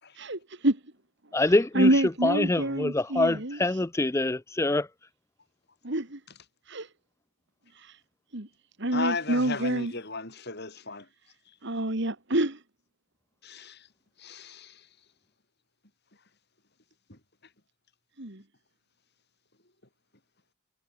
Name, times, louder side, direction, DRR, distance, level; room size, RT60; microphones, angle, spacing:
voice 1, 0.2-0.8 1.4-3.8 5.8-6.2 6.7-6.9 7.8-8.0 8.3-8.5 8.8-9.9 11.6-12.6 18.2-18.4, right 1 dB, 55° right, 2.4 m, -27 dB
voice 2, 1.3-1.9 2.2-4.9, left 2 dB, 15° left, 0.4 m, -25 dB
voice 3, 8.9-11.1 13.4-13.8 14.2-14.8, left 3 dB, 50° left, 7.4 m, -35 dB
head